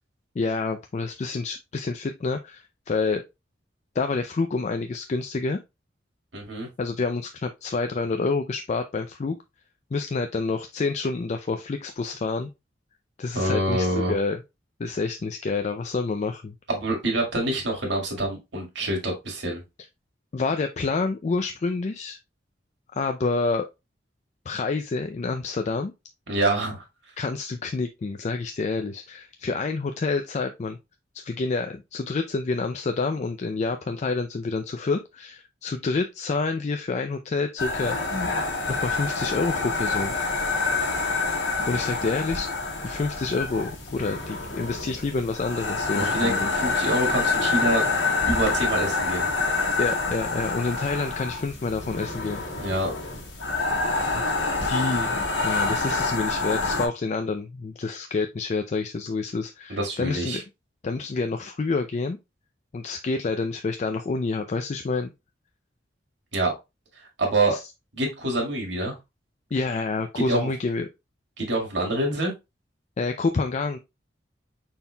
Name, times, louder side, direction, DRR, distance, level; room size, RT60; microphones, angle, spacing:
voice 1, 0.4-3.2 4.0-5.6 6.8-9.4 9.9-12.5 13.2-14.4 14.8-16.5 20.3-22.2 22.9-23.7 24.5-25.9 27.2-30.8 31.1-38.2 38.7-40.1 41.7-42.5 42.8-46.5 49.8-52.4 54.1-60.4 60.8-62.2 62.7-65.1 67.5-67.6 69.5-70.9 73.0-73.8, left 3 dB, 40° left, 7 dB, 0.4 m, -28 dB
voice 2, 6.3-6.7 13.4-14.1 16.7-19.6 26.3-26.8 45.9-47.8 48.3-49.3 52.6-52.9 59.7-60.4 66.3-66.5 67.2-67.6 67.9-68.9 70.2-70.5 71.4-72.3, right 1 dB, 75° right, 1 dB, 1.9 m, -26 dB
sound 1, 37.6-56.9, left 3 dB, 80° left, 1.6 m, -27 dB
5.4 x 4.4 x 2.2 m, 0.24 s
head